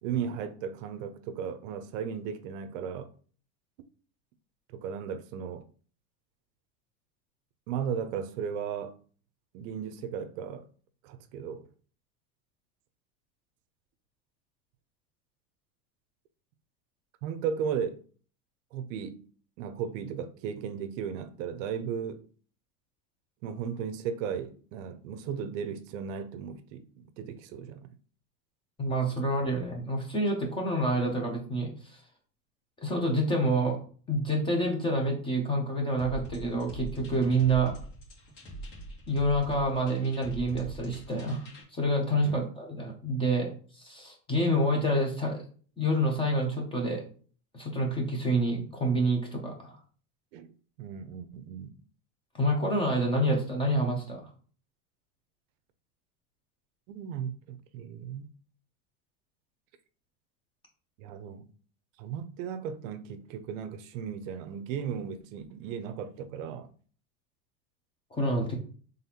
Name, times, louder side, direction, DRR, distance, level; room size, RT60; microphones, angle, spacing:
voice 1, 0.0-3.1 4.7-5.6 7.7-9.0 9.5-10.7 11.0-11.7 17.2-18.0 18.7-19.3 19.6-22.3 23.4-27.9 42.2-42.4 50.3-50.5 50.8-51.8 56.9-58.3 61.0-61.5 62.0-66.7, right 7 dB, 60° right, 0.6 m, -36 dB
voice 2, 28.8-31.7 32.8-33.8 34.1-37.7 39.1-41.4 41.7-43.5 43.8-45.4 45.8-47.0 47.5-49.8 52.3-54.2 68.1-68.6, right 1 dB, 10° left, 0.5 m, -27 dB
sound 1, 36.0-41.6, right 1 dB, 60° left, 2.1 m, -43 dB
4.0 x 3.5 x 2.8 m
supercardioid pair, 150°, 45 cm